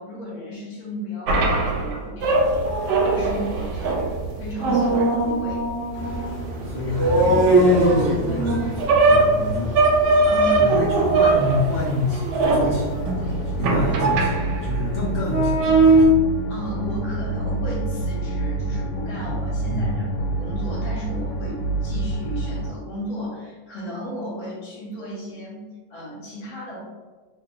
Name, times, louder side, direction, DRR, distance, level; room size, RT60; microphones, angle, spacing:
voice 1, 0.0-2.5 3.0-5.7 8.3-8.5 10.2-10.8 16.5-26.8, equal, 30° left, -5 dB, 0.8 m, -34 dB
sound 1, 1.3-14.8 15.2-16.0, right 3 dB, 80° right, 1.2 m, -21 dB
Tiger Roar, 5.9-13.9, right 1 dB, 45° right, 0.9 m, -24 dB
voice 2, 6.6-9.7 10.6-12.9 13.4-14.3 14.6-16.2 19.7-19.9, left 3 dB, 65° left, -6 dB, 0.9 m, -28 dB
sound 2, 12.6-22.7, right 2 dB, 80° left, 1.3 m, -27 dB
3.0 x 2.1 x 3.7 m, 1.4 s
omnidirectional pair, 1.8 m